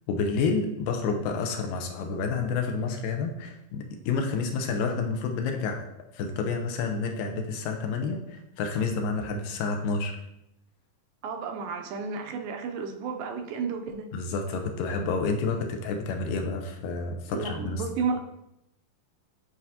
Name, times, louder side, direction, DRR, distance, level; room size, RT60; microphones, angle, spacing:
voice 1, 0.1-5.9 6.1-10.2 14.1-17.8, left 4 dB, 80° left, 4 dB, 2.3 m, -29 dB
voice 2, 11.2-14.1 17.3-18.2, right 5 dB, 80° right, 4 dB, 2.2 m, -32 dB
9.8 x 4.7 x 2.8 m, 0.84 s
omnidirectional pair, 4.1 m